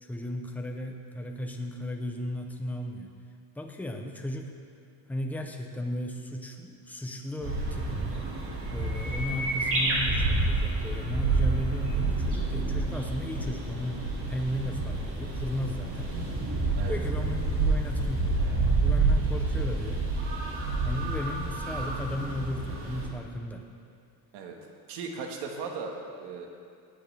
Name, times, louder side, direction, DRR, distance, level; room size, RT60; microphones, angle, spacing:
voice 1, 0.0-3.1 3.6-4.5 5.1-8.3 8.7-16.2 16.9-18.4 18.8-20.1 20.8-23.7, left 1 dB, 5° left, 3 dB, 0.7 m, -35 dB
sound 1, 7.4-23.1, right 3 dB, 35° right, 2.1 m, -28 dB
voice 2, 24.9-26.5, right 4 dB, 80° right, 1 dB, 1.8 m, -37 dB
18.0 x 9.0 x 3.5 m, 2.4 s
cardioid pair, 155°, 40 cm